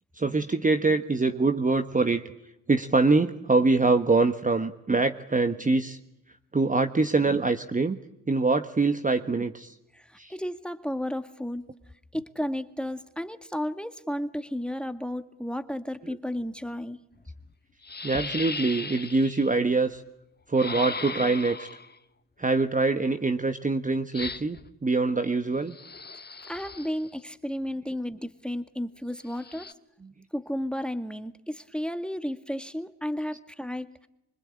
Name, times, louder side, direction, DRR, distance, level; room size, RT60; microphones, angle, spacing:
voice 1, 0.2-2.2 2.7-6.0 6.5-8.0 8.3-9.7 10.2-10.3 16.0-16.2 18.0-20.0 20.5-21.7 22.4-25.8, right 3 dB, 20° right, 8 dB, 1.4 m, -24 dB
voice 2, 9.9-11.7 12.1-17.0 26.5-29.7 30.3-33.9, equal, ahead, 10 dB, 1.9 m, -33 dB
sound 1, 17.2-17.3 17.8-19.5 20.6-22.0 24.1-24.7 25.7-27.1 29.3-29.7, left 4 dB, 20° left, 1.5 m, -37 dB
25.5 x 25.0 x 8.8 m, 0.88 s
hypercardioid pair, 50°, 44 cm